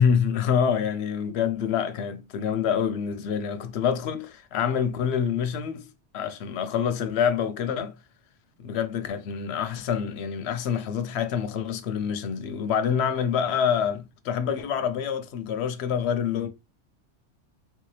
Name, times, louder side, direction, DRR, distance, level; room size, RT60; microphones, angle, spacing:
voice 1, 0.0-5.9 6.1-8.0 8.6-16.5, left 7 dB, 65° left, 0.8 m, -26 dB
3.2 x 2.8 x 3.2 m
omnidirectional pair, 1.3 m